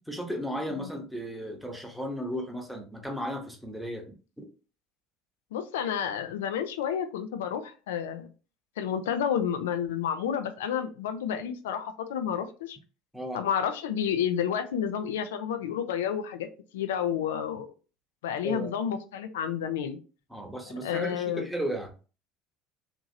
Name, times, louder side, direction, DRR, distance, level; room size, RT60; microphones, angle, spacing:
voice 1, 0.1-4.5 13.1-13.4 18.4-18.7 20.3-21.9, equal, ahead, 2 dB, 0.8 m, -35 dB
voice 2, 5.5-8.3 8.8-12.8 13.3-16.5 16.7-17.7 18.2-20.0 20.8-21.5, left 8 dB, 80° left, 9 dB, 0.4 m, -30 dB
2.8 x 2.6 x 2.6 m, 0.36 s
hypercardioid pair, 70°, 0 cm